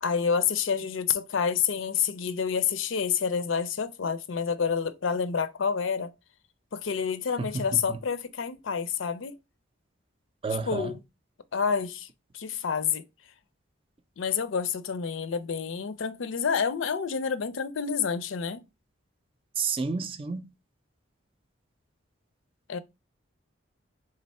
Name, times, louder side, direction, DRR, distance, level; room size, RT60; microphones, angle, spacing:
voice 1, 0.0-6.1 6.7-9.4 10.7-11.0 11.5-12.1 12.3-13.0 14.2-18.6 22.7-22.8, left 6 dB, 75° left, 0.5 m, -28 dB
voice 2, 7.4-8.0 10.4-10.9 19.6-20.5, right 4 dB, 25° right, 0.4 m, -31 dB
3.9 x 3.3 x 4.1 m
head